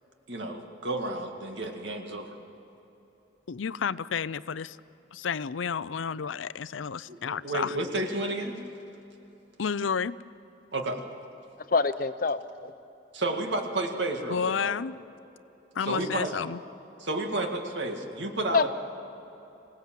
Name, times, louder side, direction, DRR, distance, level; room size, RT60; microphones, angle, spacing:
voice 1, 0.3-2.3 7.1-8.6 10.7-11.0 13.1-14.7 15.9-16.3 17.0-18.7, right 2 dB, 70° right, 4 dB, 2.1 m, -31 dB
voice 2, 3.5-4.8 5.1-7.8 9.6-10.2 14.3-15.0 15.7-16.6, left 6 dB, 90° left, 17 dB, 0.5 m, -31 dB
voice 3, 11.7-12.7 18.5-18.7, left 4 dB, 45° left, 12 dB, 0.7 m, -26 dB
26.0 x 17.5 x 7.6 m, 3.0 s
head